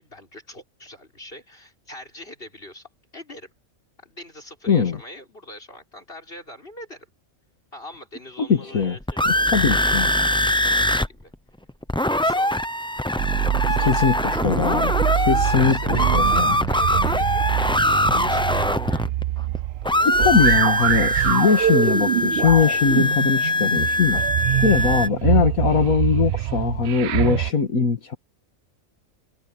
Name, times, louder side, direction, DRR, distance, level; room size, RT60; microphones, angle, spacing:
voice 1, 0.0-3.5 4.0-7.1 7.7-11.3 12.2-12.6 13.7-14.3 15.4-19.0 19.8-20.3, left 1 dB, 40° left, 6.6 m, -42 dB
voice 2, 4.7-5.0 8.4-9.0 9.3-10.1 13.8-16.6 20.1-24.2 24.6-28.2, left 5 dB, 70° left, 2.3 m, -21 dB
sound 1, 8.8-11.1 11.3-11.4 11.7-19.6 19.8-25.1, left 1 dB, 5° left, 0.3 m, -22 dB
sound 2, 13.2-27.5, right 12 dB, 65° right, 0.6 m, -25 dB
omnidirectional pair, 1.5 m